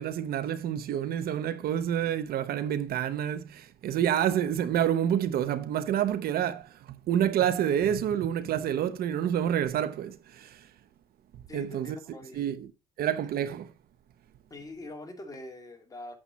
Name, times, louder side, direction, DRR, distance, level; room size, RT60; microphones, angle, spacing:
voice 1, 0.0-10.7 11.5-12.0 12.3-12.7 13.0-13.7, right 10 dB, 65° right, 0.9 m, -28 dB
voice 2, 11.5-12.5 14.5-16.2, left 2 dB, 20° left, 2.8 m, -44 dB
8.8 x 7.0 x 4.1 m
cardioid pair, 110°, 17 cm